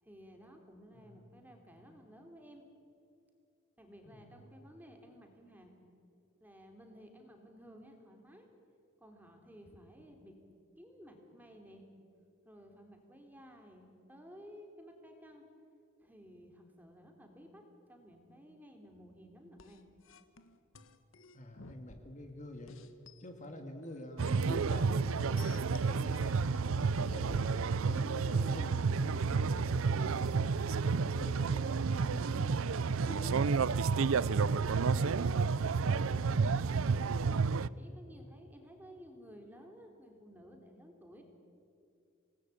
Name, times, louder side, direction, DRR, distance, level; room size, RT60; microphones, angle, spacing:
voice 1, 0.0-2.6 3.8-5.8 6.4-8.5 9.0-10.3 10.8-11.9 12.4-15.4 16.0-19.8 37.2-41.2, equal, 10° right, 3 dB, 3.3 m, -55 dB
voice 2, 0.9-1.3 4.0-4.3 21.3-22.8 23.2-26.4 26.6-33.7 37.8-38.2, left 1 dB, 35° left, 4 dB, 2.1 m, -47 dB
sound 1, 19.6-22.3 22.7-23.2 23.8-26.6, left 4 dB, 70° left, 1.5 m, -56 dB
sound 2, 24.2-37.7, right 5 dB, 80° right, 0.5 m, -30 dB
27.5 x 19.0 x 8.5 m, 2.5 s
head